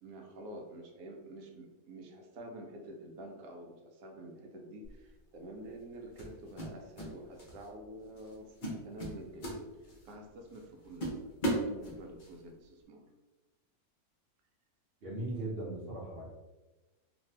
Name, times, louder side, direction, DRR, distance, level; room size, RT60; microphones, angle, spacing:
voice 1, 0.0-9.6 10.0-13.0, right 1 dB, 80° right, 1 dB, 1.1 m, -48 dB
sound 1, 4.8-5.1 6.2-7.1 7.4-7.7 8.2-8.3 8.6-10.1 10.5-10.6 11.0-12.3, right 1 dB, 50° left, 0.5 m, -36 dB
voice 2, 15.0-16.2, right 2 dB, 50° right, -4 dB, 0.8 m, -38 dB
2.6 x 2.5 x 3.2 m, 1.1 s
omnidirectional pair, 1.6 m